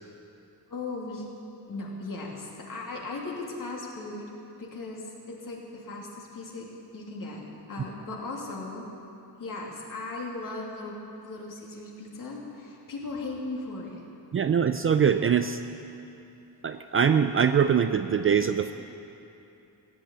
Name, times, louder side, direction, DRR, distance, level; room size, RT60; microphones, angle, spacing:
voice 1, 0.7-1.2 1.7-8.8 9.4-10.9 11.2-14.0, left 3 dB, 50° left, -2 dB, 2.9 m, -37 dB
voice 2, 14.3-15.6 16.6-18.7, right 7 dB, 35° right, 9 dB, 0.4 m, -23 dB
15.5 x 9.0 x 8.4 m, 2.8 s
cardioid pair, 125°, 41 cm